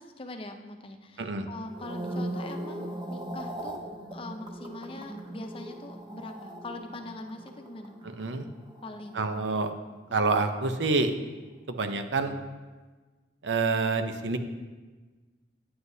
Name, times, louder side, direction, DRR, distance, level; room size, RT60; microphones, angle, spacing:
voice 1, 0.0-3.8 4.1-7.9 8.8-9.5 10.2-10.3, left 2 dB, 30° left, 5 dB, 0.5 m, -42 dB
sound 1, 1.6-10.0 10.3-10.7, right 1 dB, 25° right, 0.8 m, -39 dB
voice 2, 9.1-9.7 10.1-11.1 11.7-12.3 13.4-14.4, right 3 dB, 80° right, 7 dB, 0.7 m, -27 dB
9.5 x 7.8 x 2.7 m, 1.3 s
head